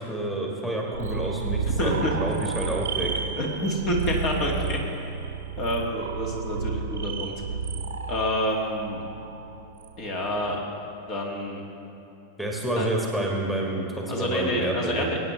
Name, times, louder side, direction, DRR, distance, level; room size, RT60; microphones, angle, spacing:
voice 1, 0.0-3.1 12.4-15.1, right 1 dB, 5° left, -2 dB, 1.6 m, -29 dB
sound 1, 0.9-10.6, right 5 dB, 65° right, 0.8 m, -32 dB
voice 2, 1.8-2.1 3.4-4.8 5.6-7.3 8.1-9.0 10.0-10.6 11.1-11.6 12.8-12.9 14.1-15.2, equal, 40° left, 0 dB, 2.0 m, -28 dB
22.5 x 9.2 x 3.2 m, 2.8 s
figure-of-eight pair, 90°, 0 cm